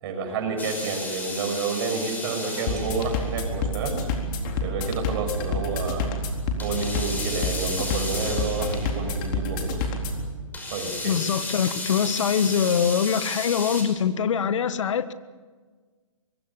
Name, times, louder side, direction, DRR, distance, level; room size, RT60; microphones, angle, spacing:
voice 1, 0.0-4.1 4.6-6.1 6.6-9.9 10.7-11.2, right 4 dB, 45° right, 4 dB, 6.8 m, -29 dB
sound 1, 0.6-3.4 6.6-9.0 10.5-13.8, left 2 dB, 10° left, 5.8 m, -34 dB
sound 2, 2.7-10.3, left 2 dB, 40° left, 4.1 m, -28 dB
voice 2, 11.0-15.1, left 7 dB, 65° left, 14 dB, 1.5 m, -23 dB
25.0 x 22.0 x 7.2 m, 1.4 s
hypercardioid pair, 130°, 17 cm